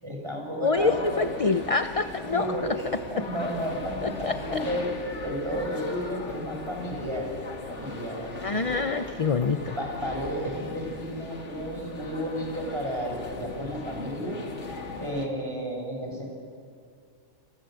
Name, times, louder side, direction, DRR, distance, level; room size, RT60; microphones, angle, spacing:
voice 1, 0.0-1.3 2.3-4.9 5.2-8.8 9.7-14.4 15.0-16.3, equal, 25° right, 0 dB, 7.0 m, -33 dB
voice 2, 0.6-2.5 4.0-4.7 8.4-9.7, left 4 dB, 35° left, 9 dB, 0.8 m, -26 dB
sound 1, 0.8-15.3, left 3 dB, 85° left, 2.3 m, -38 dB
28.5 x 26.0 x 7.9 m, 2.3 s
omnidirectional pair, 1.2 m